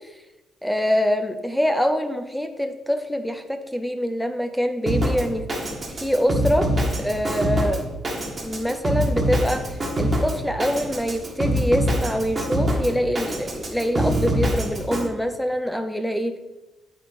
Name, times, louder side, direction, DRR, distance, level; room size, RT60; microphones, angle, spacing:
voice 1, 0.6-6.7 7.0-7.8 8.4-16.4, equal, 5° left, 7 dB, 0.7 m, -25 dB
Drum kit, 4.9-15.1, equal, 35° right, 1.6 m, -25 dB
8.6 x 5.4 x 4.2 m, 1.1 s
cardioid pair, 80°, 0 cm